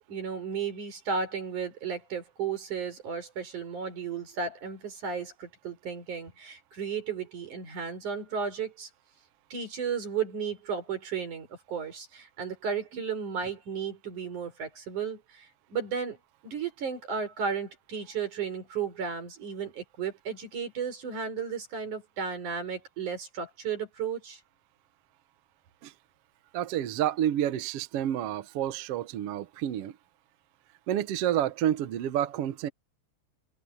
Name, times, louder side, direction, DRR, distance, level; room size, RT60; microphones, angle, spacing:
voice 1, 0.1-8.9 9.5-16.2 16.4-24.4, right 6 dB, 90° right, 6.3 m, -34 dB
voice 2, 26.5-30.0 30.9-32.7, right 11 dB, 65° right, 1.7 m, -29 dB
omnidirectional pair, 3.4 m